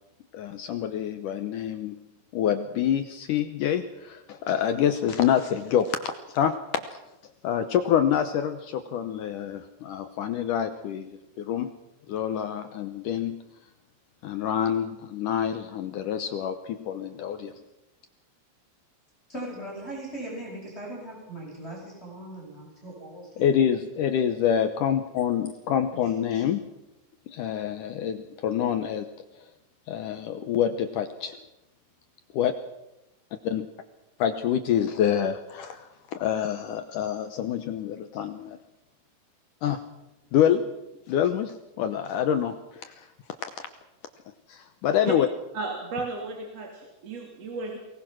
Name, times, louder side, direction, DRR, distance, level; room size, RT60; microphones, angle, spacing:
voice 1, 0.3-2.0 2.3-6.8 7.4-11.1 11.4-11.7 12.1-13.4 14.2-17.5 23.4-26.6 27.3-29.1 29.9-31.4 32.3-32.5 33.4-33.7 34.2-38.6 39.6-39.8 40.3-40.6 41.1-43.1 44.5-45.3, left 9 dB, 70° left, 9 dB, 2.1 m, -26 dB
voice 2, 19.3-23.5 26.0-26.5, right 1 dB, 15° left, -3 dB, 7.9 m, -39 dB
voice 3, 45.5-47.8, right 3 dB, 45° right, 0 dB, 3.4 m, -34 dB
23.5 x 20.0 x 6.1 m, 0.94 s
omnidirectional pair, 4.6 m